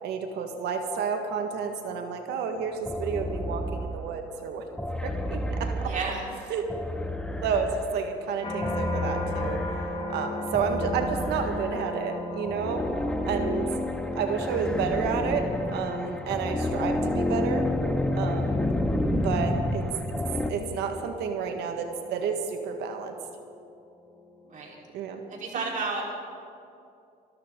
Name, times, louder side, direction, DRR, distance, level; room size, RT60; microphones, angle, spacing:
voice 1, 0.0-4.6 5.0-5.9 6.5-6.7 7.4-9.6 10.1-12.8 13.3-13.7 14.1-15.4 15.7-17.7 18.2-18.6 19.1-19.9 20.5-23.1 24.9-25.2 25.5-25.7, right 6 dB, 80° right, 5 dB, 1.7 m, -30 dB
sound 1, 2.9-4.2 4.8-8.0 8.6-10.0 10.5-12.0 12.5-20.5, left 1 dB, 5° left, 0.9 m, -30 dB
voice 2, 5.9-6.2 24.5-24.8 25.3-26.0, right 4 dB, 50° right, -2 dB, 4.1 m, -32 dB
sound 2, 8.4-23.6 24.1-24.6, left 2 dB, 30° left, 3.5 m, -37 dB
24.0 x 14.0 x 3.9 m, 2.6 s
cardioid pair, 110°, 17 cm